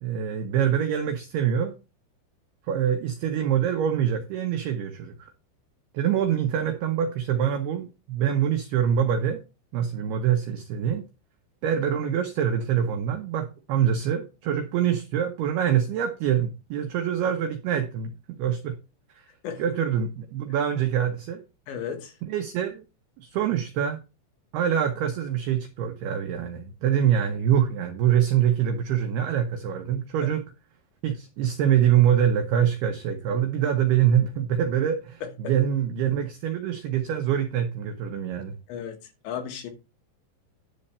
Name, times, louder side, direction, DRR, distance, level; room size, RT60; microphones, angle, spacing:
voice 1, 0.0-1.8 2.7-5.3 5.9-9.4 9.7-11.0 11.6-18.8 19.2-19.3 19.6-21.4 22.3-22.8 23.2-24.0 24.5-30.4 31.0-38.6, right 9 dB, 80° right, 2.3 m, -25 dB
voice 2, 21.7-22.1 38.7-38.9 39.2-39.7, left 8 dB, 70° left, 3.3 m, -34 dB
11.0 x 4.3 x 6.7 m
omnidirectional pair, 5.9 m